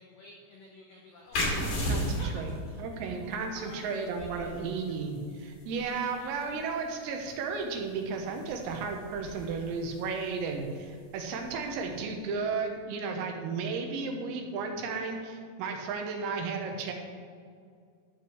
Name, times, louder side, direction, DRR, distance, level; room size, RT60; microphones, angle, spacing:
voice 1, 0.0-4.7 5.7-6.3, left 1 dB, 85° left, -2 dB, 1.9 m, -52 dB
sound 1, 1.3-12.6, equal, 45° left, 3.6 m, -38 dB
voice 2, 2.8-16.9, right 4 dB, 85° right, 3 dB, 4.0 m, -34 dB
13.5 x 5.8 x 6.3 m, 2.2 s
omnidirectional pair, 6.0 m